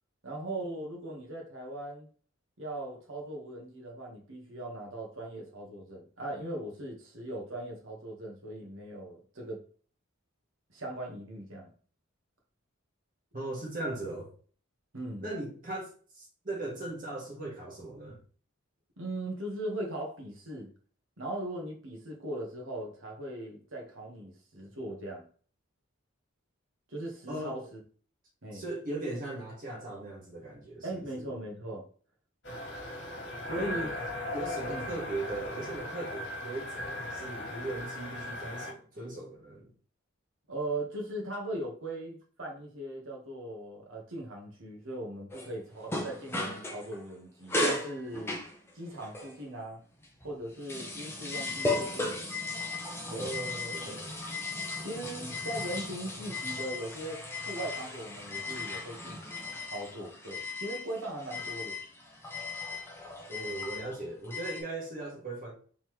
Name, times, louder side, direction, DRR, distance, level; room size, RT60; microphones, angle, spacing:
voice 1, 0.2-2.1 2.6-9.6 10.7-11.7 14.9-15.3 19.0-20.7 21.2-25.2 26.9-27.8 28.4-28.6 30.8-31.8 33.5-33.9 34.7-35.0 40.5-48.4 48.7-49.8 50.2-52.2 53.1-53.3 54.8-59.4 59.7-61.8, right 1 dB, 75° right, 1.4 m, -39 dB
voice 2, 13.3-14.3 15.2-18.2 27.3-27.6 28.5-31.3 33.5-33.9 34.3-39.7 53.1-54.1 63.3-65.5, right 2 dB, 40° right, 1.6 m, -38 dB
sound 1, 32.4-38.7, left 1 dB, 60° left, 1.6 m, -38 dB
sound 2, 45.3-47.1 47.5-49.4 50.0-64.6, left 2 dB, 10° left, 0.7 m, -36 dB
4.1 x 3.7 x 3.1 m
head